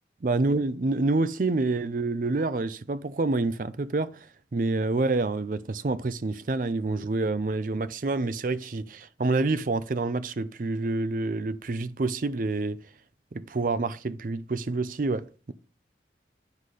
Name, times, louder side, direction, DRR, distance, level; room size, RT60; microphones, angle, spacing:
voice 1, 0.2-4.2 4.5-12.8 13.3-15.5, right 3 dB, 45° right, 0.5 m, -27 dB
9.5 x 4.1 x 4.8 m
head